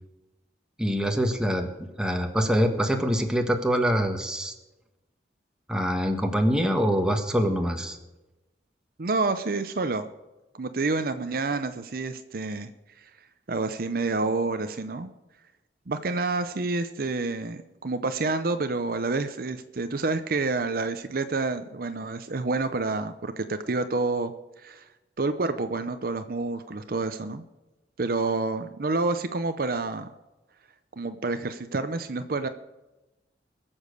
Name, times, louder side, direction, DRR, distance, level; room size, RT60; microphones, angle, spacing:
voice 1, 0.8-1.7 2.0-4.5 5.7-8.0, equal, 5° right, 4 dB, 1.4 m, -24 dB
voice 2, 9.0-10.1 10.6-12.7 13.0-13.1 13.5-15.1 15.9-24.9 25.2-27.4 28.0-30.1 30.9-32.5, right 3 dB, 55° right, 10 dB, 0.7 m, -28 dB
21.5 x 7.2 x 6.6 m, 1.0 s
head